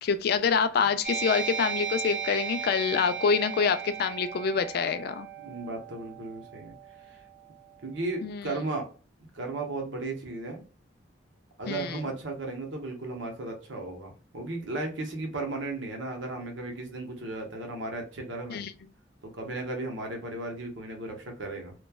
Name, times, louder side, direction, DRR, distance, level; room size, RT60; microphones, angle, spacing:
voice 1, 0.0-5.3 8.2-8.6 11.7-12.0 18.5-18.7, left 6 dB, 55° left, 0.3 m, -26 dB
sound 1, 1.0-8.1, right 7 dB, 45° right, 1.0 m, -36 dB
voice 2, 5.4-6.8 7.1-7.2 7.8-8.9 9.3-10.6 11.6-18.7 19.2-21.7, right 2 dB, 75° right, 0.9 m, -35 dB
3.0 x 2.2 x 2.2 m
head